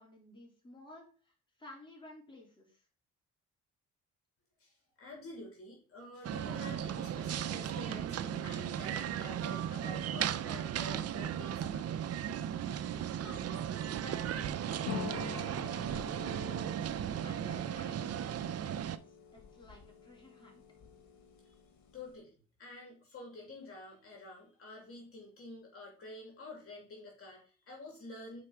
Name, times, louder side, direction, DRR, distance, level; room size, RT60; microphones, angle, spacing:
voice 1, 0.0-2.9 13.2-16.5 16.8-20.6, left 1 dB, 15° left, -2 dB, 3.5 m, -55 dB
voice 2, 4.6-11.9 21.9-28.4, left 2 dB, 50° left, 0 dB, 2.8 m, -49 dB
sound 1, 6.2-19.0, right 9 dB, 55° right, 0.6 m, -36 dB
sound 2, 14.9-22.2, left 6 dB, 70° left, 1.6 m, -46 dB
5.9 x 4.7 x 5.7 m, 0.40 s
cardioid pair, 90°, 30 cm